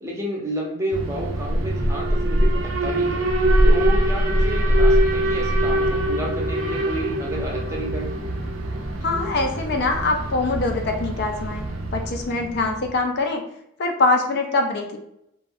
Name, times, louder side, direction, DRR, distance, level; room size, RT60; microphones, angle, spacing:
voice 1, 0.0-3.2 3.6-8.1, right 1 dB, 15° right, -2 dB, 0.6 m, -30 dB
Alarm, 0.9-12.9, right 1 dB, 90° right, 0.5 m, -22 dB
voice 2, 9.0-11.6 11.9-13.4 13.8-15.0, left 3 dB, 55° left, 4 dB, 0.4 m, -23 dB
2.5 x 2.2 x 3.3 m, 0.77 s
head